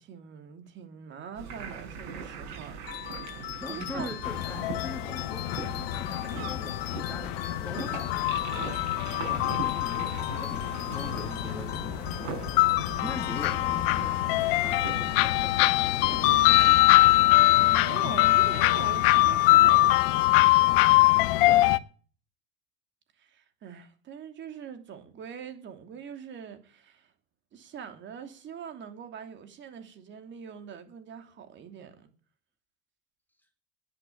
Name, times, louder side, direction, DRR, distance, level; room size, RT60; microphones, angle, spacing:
voice 1, 0.0-2.8 3.2-3.3 3.7-4.1 16.4-20.8 23.2-27.1 27.5-32.1, right 7 dB, 40° right, 2.8 m, -43 dB
sound 1, 1.3-17.2, right 5 dB, 60° right, 6.8 m, -40 dB
sound 2, 2.9-14.1, left 14 dB, 85° left, 1.2 m, -41 dB
voice 2, 3.2-8.5 9.2-15.7 16.6-16.8 21.3-21.7, left 1 dB, 5° left, 1.9 m, -43 dB
sound 3, 4.2-21.8, left 18 dB, 65° left, 0.8 m, -23 dB
9.9 x 9.0 x 9.3 m
supercardioid pair, 105°, 29 cm